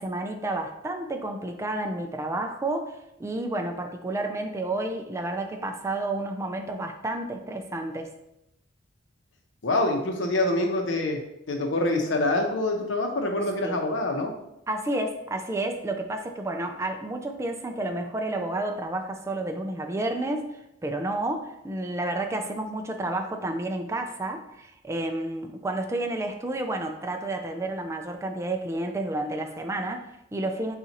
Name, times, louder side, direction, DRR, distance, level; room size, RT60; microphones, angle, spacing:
voice 1, 0.0-8.1 13.6-13.8 14.7-20.5 20.8-30.8, right 2 dB, 15° right, 4 dB, 0.3 m, -30 dB
voice 2, 9.6-11.2 11.5-14.3, left 2 dB, 85° left, 3 dB, 0.8 m, -25 dB
6.9 x 2.4 x 2.9 m, 0.84 s
head